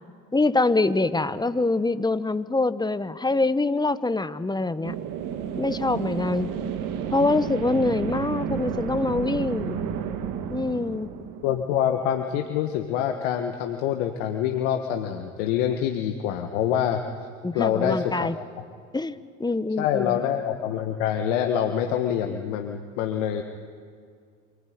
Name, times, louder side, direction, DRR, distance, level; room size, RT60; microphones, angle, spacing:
voice 1, 0.3-4.9 5.6-6.5 7.1-9.8 10.5-11.1 17.4-18.3 18.9-20.2, left 3 dB, 10° left, 13 dB, 1.2 m, -25 dB
sound 1, 4.8-12.4, right 8 dB, 60° right, 2.1 m, -31 dB
voice 2, 11.4-17.0 17.5-18.3 19.8-23.4, left 9 dB, 75° left, 4 dB, 1.6 m, -25 dB
26.5 x 19.0 x 9.6 m, 2.2 s
hypercardioid pair, 70°, 36 cm